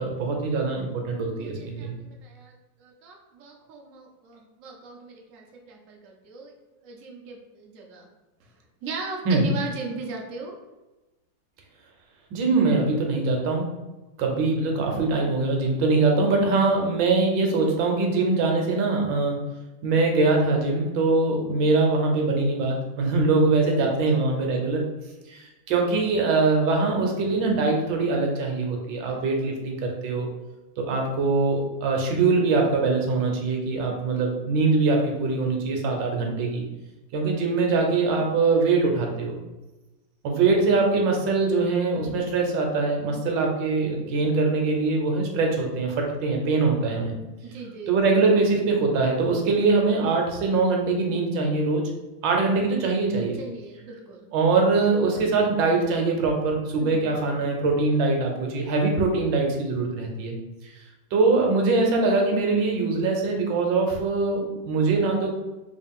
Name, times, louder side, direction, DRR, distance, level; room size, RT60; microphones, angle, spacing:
voice 1, 0.0-2.0 9.3-9.5 12.3-13.7 14.2-19.4 19.8-24.8 25.3-30.3 30.8-36.6 37.1-39.4 40.2-47.1 47.9-51.9 52.2-53.4 54.3-60.4 61.1-65.3, right 3 dB, 75° right, 1 dB, 1.3 m, -23 dB
voice 2, 1.4-6.5 6.8-8.1 8.4-10.6 23.8-24.2 24.5-24.6 29.0-29.3 47.4-47.9 53.3-54.3 56.8-57.2, right 4 dB, 90° right, 0 dB, 0.7 m, -38 dB
3.6 x 2.4 x 3.6 m, 1.1 s
omnidirectional pair, 2.2 m